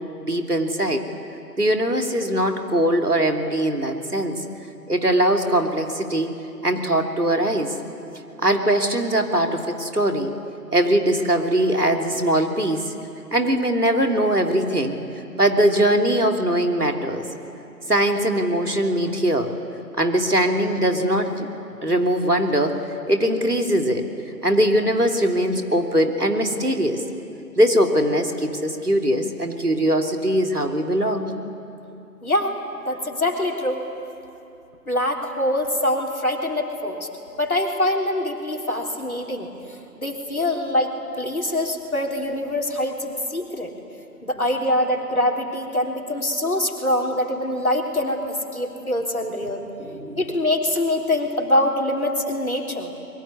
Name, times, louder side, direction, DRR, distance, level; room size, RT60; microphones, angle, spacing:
voice 1, 0.2-1.0 1.6-4.4 4.9-6.3 6.6-7.8 8.4-10.3 10.7-12.9 13.3-14.9 15.4-17.3 17.9-19.5 20.0-21.5 21.8-22.8 23.1-24.0 24.4-27.0 27.6-31.3 49.8-50.2, right 1 dB, 65° right, 3 dB, 3.0 m, -21 dB
voice 2, 32.2-32.6 32.8-33.8 34.9-37.1 37.4-40.9 41.2-43.7 44.2-49.6 50.2-52.9, left 1 dB, 60° left, 1 dB, 3.6 m, -24 dB
25.5 x 22.5 x 9.7 m, 2.7 s
figure-of-eight pair, 175°, 49 cm